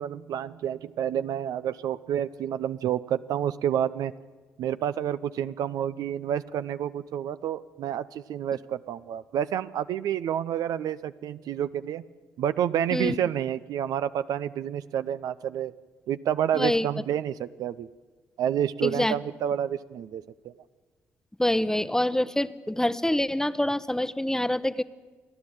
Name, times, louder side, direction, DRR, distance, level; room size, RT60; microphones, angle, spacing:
voice 1, 0.0-4.1 4.6-12.0 12.4-15.7 16.1-17.9 18.4-20.5, right 10 dB, 75° right, 13 dB, 0.5 m, -29 dB
voice 2, 16.5-16.9 18.8-19.2 21.4-24.8, left 1 dB, 10° left, 15 dB, 0.8 m, -26 dB
28.0 x 10.5 x 8.8 m, 1.4 s
supercardioid pair, 50°, 6 cm